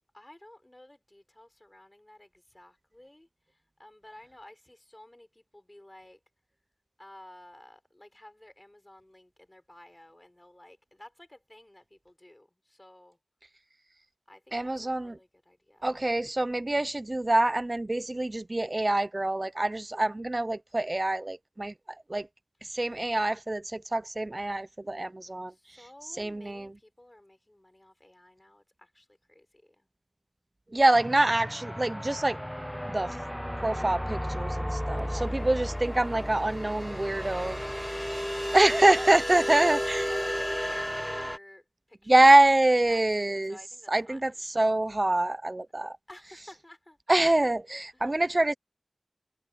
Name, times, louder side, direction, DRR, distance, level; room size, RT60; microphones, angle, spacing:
voice 1, 0.1-6.2 7.0-13.2 14.3-16.0 25.5-29.9 35.0-35.7 39.3-42.3 42.9-44.4 46.1-47.0 47.9-48.2, left 1 dB, 20° left, 6.6 m, -53 dB
voice 2, 14.5-15.2 15.8-21.7 22.1-22.3 22.7-25.5 26.2-26.7 30.7-32.4 32.9-33.2 33.6-37.6 38.5-40.0 42.1-43.6 43.9-46.0 47.1-48.5, right 2 dB, 35° right, 0.5 m, -25 dB
sound 1, 30.9-41.4, equal, 5° left, 1.1 m, -33 dB
wide cardioid pair, 55°, 0 cm